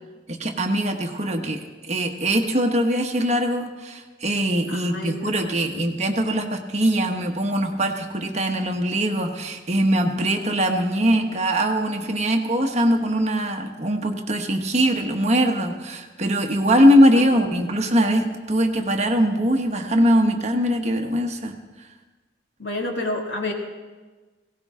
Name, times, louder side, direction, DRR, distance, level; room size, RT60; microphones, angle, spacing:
voice 1, 0.3-21.5, equal, 35° right, 4 dB, 1.2 m, -21 dB
voice 2, 4.7-5.8 16.7-16.8 17.4-18.0 22.6-23.5, left 2 dB, 75° left, 0 dB, 2.4 m, -31 dB
17.5 x 17.5 x 3.7 m, 1.3 s
head